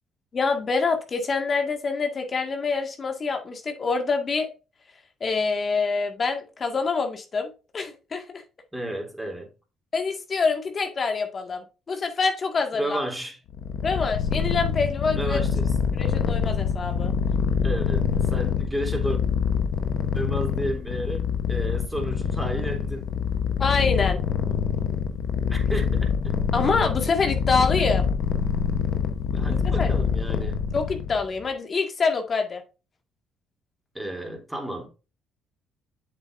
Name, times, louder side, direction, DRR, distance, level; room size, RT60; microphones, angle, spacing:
voice 1, 0.3-4.5 5.2-8.4 9.9-13.0 13.8-15.4 15.9-17.1 23.6-24.2 26.5-28.1 29.5-29.9 30.7-32.6, left 4 dB, 45° left, 1.9 m, -26 dB
voice 2, 8.7-9.5 12.8-13.4 15.1-15.7 17.6-19.2 20.1-21.2 21.5-23.3 25.5-26.3 27.6-27.7 29.3-30.6 33.9-34.9, right 1 dB, 5° right, 3.3 m, -32 dB
Purr, 13.5-31.2, left 6 dB, 75° left, 1.0 m, -25 dB
8.1 x 7.0 x 2.6 m
supercardioid pair, 70°, 0 cm